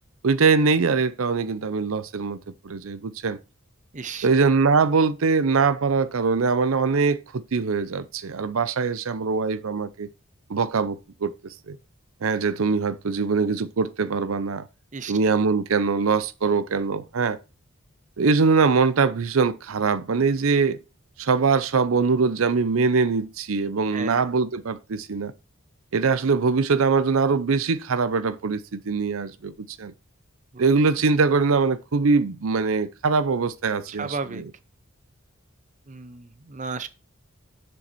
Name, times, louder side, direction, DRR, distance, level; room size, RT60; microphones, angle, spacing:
voice 1, 0.2-3.4 4.2-10.1 10.5-11.3 11.7-11.8 12.2-14.6 15.1-17.4 18.2-20.8 21.2-25.3 25.9-29.9 30.6-34.1, right 4 dB, 80° right, 0.6 m, -22 dB
voice 2, 3.9-4.3 14.9-15.2 23.9-24.3 30.5-30.6 33.9-34.4 35.9-36.9, right 4 dB, 35° right, 0.7 m, -34 dB
7.3 x 6.4 x 4.4 m
head